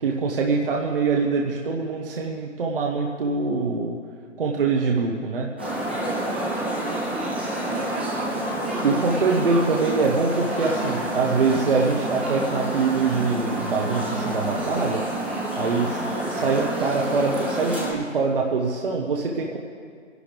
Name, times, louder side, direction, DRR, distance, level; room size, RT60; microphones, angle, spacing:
voice 1, 0.0-4.0 4.4-5.5 8.8-15.0 15.5-19.6, right 4 dB, 50° right, -1 dB, 1.1 m, -24 dB
sound 1, 5.6-17.9, right 1 dB, 10° right, 0.6 m, -28 dB
voice 2, 6.6-8.4, right 2 dB, 80° right, -1 dB, 2.6 m, -36 dB
23.5 x 11.5 x 3.5 m, 2.1 s
hypercardioid pair, 180°, 36 cm